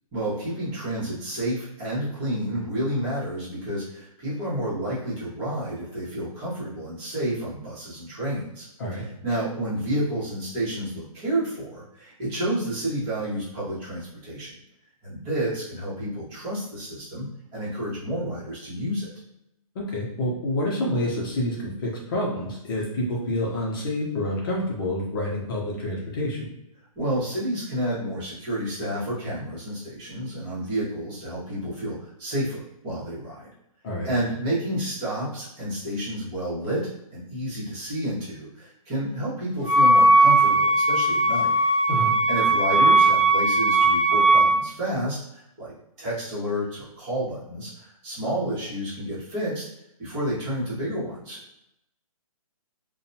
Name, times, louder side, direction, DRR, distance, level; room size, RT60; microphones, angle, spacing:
voice 1, 0.1-8.7 8.9-14.5 15.0-17.3 17.5-19.1 26.9-33.5 34.0-41.5 42.3-45.7 46.0-49.7 50.0-51.4, right 1 dB, 20° right, -9 dB, 1.2 m, -30 dB
voice 2, 19.7-26.5 33.8-34.1 41.9-42.1, left 1 dB, 35° left, -4 dB, 0.7 m, -28 dB
Wind instrument woodwind instrument, 39.6-44.6, right 2 dB, 5° left, 0.4 m, -18 dB
2.7 x 2.2 x 2.7 m, 0.83 s
hypercardioid pair, 160°, 19 cm